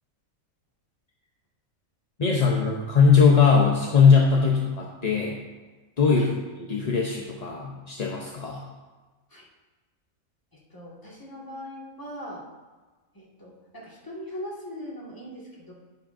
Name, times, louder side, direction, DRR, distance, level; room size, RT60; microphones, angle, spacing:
voice 1, 2.2-5.4 6.0-6.3 6.6-8.6, left 5 dB, 40° left, -1 dB, 0.7 m, -20 dB
voice 2, 10.5-12.5 13.1-15.7, equal, 15° left, -5 dB, 1.9 m, -40 dB
10.5 x 9.9 x 2.6 m, 1.3 s
omnidirectional pair, 1.5 m